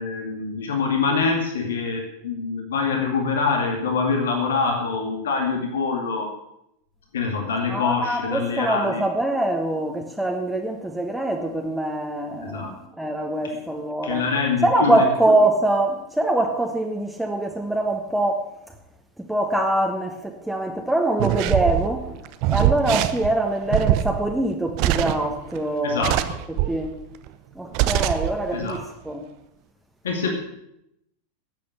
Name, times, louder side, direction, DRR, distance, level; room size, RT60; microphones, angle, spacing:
voice 1, 0.0-6.3 7.1-9.0 12.5-12.7 14.0-15.0 25.8-26.2 28.5-28.8 30.0-30.3, left 4 dB, 65° left, 2 dB, 2.3 m, -24 dB
voice 2, 7.7-14.2 14.6-18.4 19.2-26.2 26.5-26.9 27.5-29.2, right 1 dB, 5° right, 1 dB, 1.4 m, -24 dB
sound 1, 21.2-25.6 26.0-26.9 27.3-27.4 27.7-28.4 28.6-28.8, right 14 dB, 45° right, 0.8 m, -23 dB
12.0 x 8.4 x 8.2 m, 0.79 s
figure-of-eight pair, 90°, 0 cm